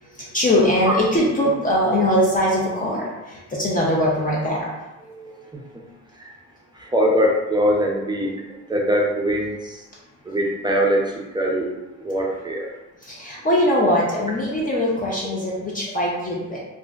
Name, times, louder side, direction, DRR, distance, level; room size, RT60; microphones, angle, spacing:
voice 1, 0.0-4.7 13.0-16.6, left 1 dB, 30° left, -4 dB, 0.6 m, -21 dB
voice 2, 5.1-5.8 6.2-6.3 6.7-8.4 8.7-9.8 10.2-11.7 12.0-12.7, equal, 15° right, -1 dB, 0.5 m, -22 dB
2.5 x 2.1 x 3.6 m, 1.0 s
cardioid pair, 90°, 30 cm